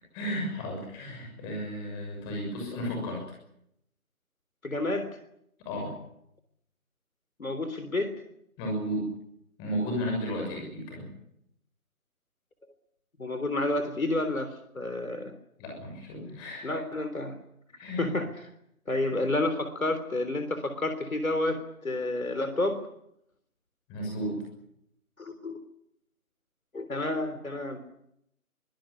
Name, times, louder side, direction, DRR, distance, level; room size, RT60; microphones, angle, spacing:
voice 1, 0.1-3.2 5.6-5.9 8.6-9.0 9.6-11.1 15.6-16.8 17.8-18.1 23.9-24.4, equal, 10° left, 0 dB, 6.5 m, -33 dB
voice 2, 4.6-5.1 7.4-8.1 13.2-15.3 16.6-17.4 18.0-18.3 18.9-22.8 25.2-25.6 26.7-27.8, left 2 dB, 70° left, 10 dB, 3.6 m, -30 dB
23.5 x 18.5 x 9.9 m, 0.77 s
figure-of-eight pair, 155°, 44 cm